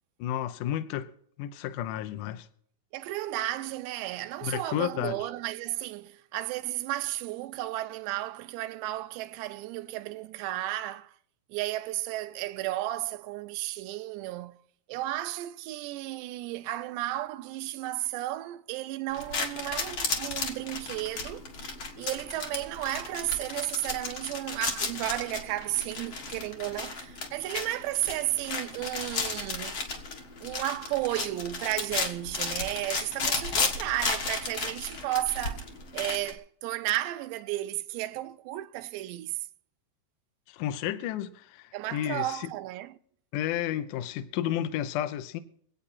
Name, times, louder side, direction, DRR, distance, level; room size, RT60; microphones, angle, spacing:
voice 1, 0.2-1.1 1.4-2.5 4.4-5.2 40.5-42.5 43.3-45.4, left 11 dB, 85° left, 1.8 m, -32 dB
voice 2, 2.9-11.1 11.5-14.6 14.9-21.4 22.0-29.8 30.4-35.7 35.9-39.4 41.7-43.0, right 16 dB, 85° right, 2.9 m, -33 dB
sound 1, 19.1-36.3, left 4 dB, 60° left, 1.3 m, -34 dB
24.0 x 8.5 x 4.3 m
omnidirectional pair, 4.9 m